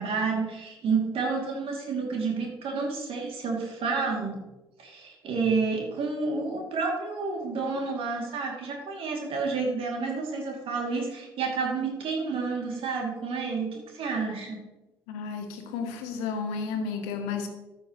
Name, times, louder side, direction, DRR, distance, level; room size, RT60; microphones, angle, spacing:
voice 1, 0.0-4.4 4.8-14.6, right 4 dB, 50° right, 1 dB, 2.5 m, -30 dB
voice 2, 15.1-17.5, left 5 dB, 65° left, 6 dB, 1.2 m, -32 dB
13.0 x 8.5 x 3.0 m, 1.0 s
figure-of-eight pair, 50°, 12 cm